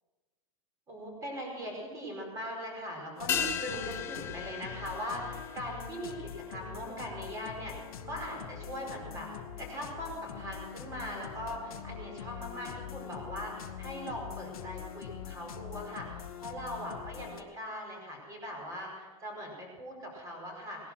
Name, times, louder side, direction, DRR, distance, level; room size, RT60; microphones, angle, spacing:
voice 1, 0.9-7.7 8.0-9.3 9.6-20.9, equal, 20° right, 0 dB, 4.9 m, -40 dB
sound 1, 3.2-17.4, left 9 dB, 90° left, 1.6 m, -44 dB
sound 2, 3.3-8.0 8.3-8.4, left 8 dB, 15° left, 0.6 m, -38 dB
18.5 x 11.5 x 6.2 m, 1.3 s
supercardioid pair, 165°, 18 cm